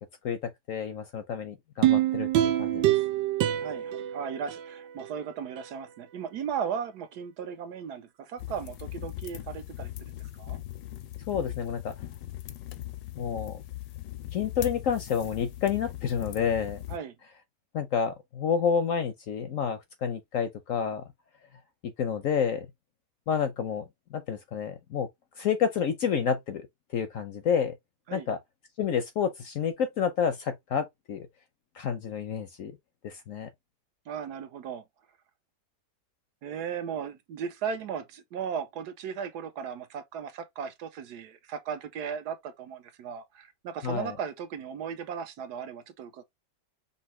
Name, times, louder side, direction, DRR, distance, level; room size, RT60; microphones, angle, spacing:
voice 1, 0.2-2.3 2.6-2.9 11.3-11.9 13.2-13.6 14.3-16.8 17.7-21.0 21.8-22.7 23.3-23.8 24.1-25.1 25.4-26.7 26.9-27.7 28.1-28.4 28.8-31.3 31.8-32.7 33.0-33.5 43.8-44.1, left 7 dB, 65° left, 0.8 m, -29 dB
sound 1, 1.8-5.1 5.6-5.7, right 13 dB, 85° right, 1.4 m, -26 dB
voice 2, 3.6-9.9 10.4-10.6 16.9-17.1 28.1-28.3 34.1-34.8 36.4-46.2, right 7 dB, 70° right, 1.2 m, -36 dB
sound 2, 8.4-17.0, left 14 dB, 90° left, 1.3 m, -40 dB
5.4 x 2.8 x 3.1 m
omnidirectional pair, 1.8 m